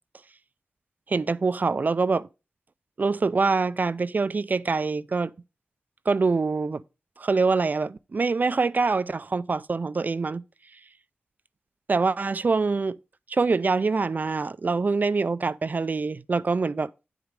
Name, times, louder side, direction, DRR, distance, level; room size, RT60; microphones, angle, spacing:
voice 1, 1.1-2.3 3.0-5.3 6.1-6.8 7.2-10.4 11.9-13.0 13.3-16.9, right 4 dB, 45° right, 0.4 m, -25 dB
9.8 x 4.7 x 5.1 m
wide cardioid pair, 80°, 4 cm